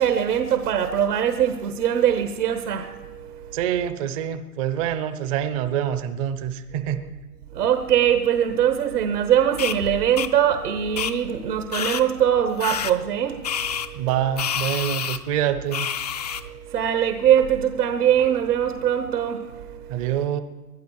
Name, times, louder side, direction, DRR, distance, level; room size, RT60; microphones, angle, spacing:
voice 1, 0.0-3.6 7.5-14.1 16.4-20.1, right 9 dB, 75° right, 8 dB, 1.3 m, -22 dB
voice 2, 3.5-7.0 13.9-15.9 19.9-20.4, right 10 dB, 25° right, 11 dB, 0.6 m, -26 dB
sound 1, 9.6-9.8 10.2-10.3 11.0-11.1 11.7-12.0 12.6-12.9 13.4-13.9 14.4-15.2 15.7-16.4, left 8 dB, 30° left, 0.4 m, -27 dB
21.0 x 11.5 x 4.7 m, 1.2 s
hypercardioid pair, 135°, 46 cm